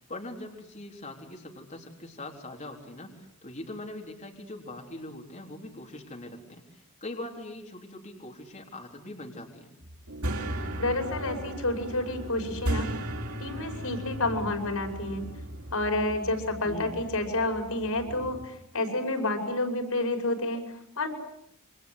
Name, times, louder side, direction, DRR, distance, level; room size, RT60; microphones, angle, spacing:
voice 1, 0.1-9.7 16.6-17.0, left 1 dB, 35° left, 0 dB, 3.9 m, -42 dB
sound 1, 9.8-18.4, right 1 dB, 80° right, 4.3 m, -36 dB
voice 2, 10.8-12.9 13.4-15.3 15.7-21.1, left 2 dB, 80° left, 5 dB, 6.1 m, -29 dB
28.5 x 25.0 x 8.2 m, 0.72 s
head